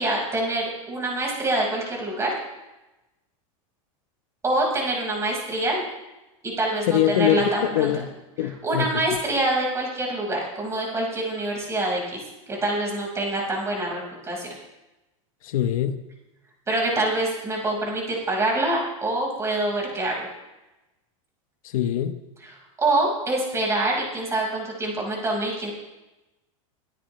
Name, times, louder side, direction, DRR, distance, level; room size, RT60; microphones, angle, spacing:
voice 1, 0.0-2.3 4.4-5.8 6.4-7.9 8.6-12.2 12.5-14.5 16.7-20.3 22.8-25.7, right 2 dB, 15° right, -1 dB, 5.3 m, -25 dB
voice 2, 6.9-9.0 15.4-16.0 21.6-22.2, left 11 dB, 80° left, 9 dB, 1.2 m, -24 dB
23.5 x 13.0 x 3.3 m, 1.0 s
supercardioid pair, 145°, 17 cm